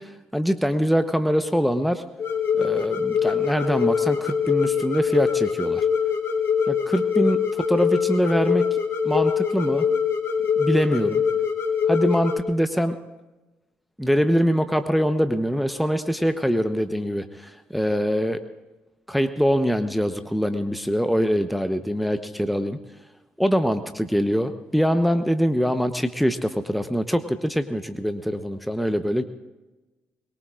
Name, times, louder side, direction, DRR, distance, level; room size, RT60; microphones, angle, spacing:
voice 1, 0.0-2.0 2.6-5.9 6.7-7.4 7.7-8.8 9.0-9.9 10.6-11.2 11.9-13.0 14.0-18.4 19.1-22.8 23.4-29.2, equal, ahead, 9 dB, 1.0 m, -23 dB
sound 1, 2.2-12.4, left 7 dB, 45° left, 2.9 m, -23 dB
22.5 x 22.0 x 2.5 m, 1.1 s
hypercardioid pair, 40°, 6 cm